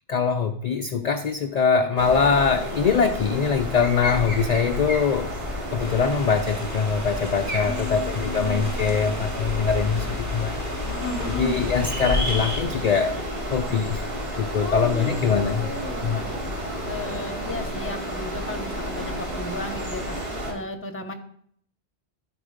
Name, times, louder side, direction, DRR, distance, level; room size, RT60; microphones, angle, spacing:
voice 1, 0.1-5.4 5.7-10.6 11.2-13.1 13.5-14.0 14.3-15.7 16.0-16.2, left 6 dB, 50° left, 5 dB, 0.5 m, -23 dB
sound 1, 2.0-20.5, left 1 dB, 55° right, 2.4 m, -31 dB
sound 2, 5.8-12.6, right 1 dB, 15° right, 1.0 m, -36 dB
voice 2, 7.6-9.0 9.9-10.2 10.8-11.6 14.5-15.2 15.5-16.3 16.6-20.2 20.5-21.1, left 1 dB, 15° left, 4 dB, 0.8 m, -35 dB
11.5 x 4.8 x 5.0 m, 0.64 s
omnidirectional pair, 1.1 m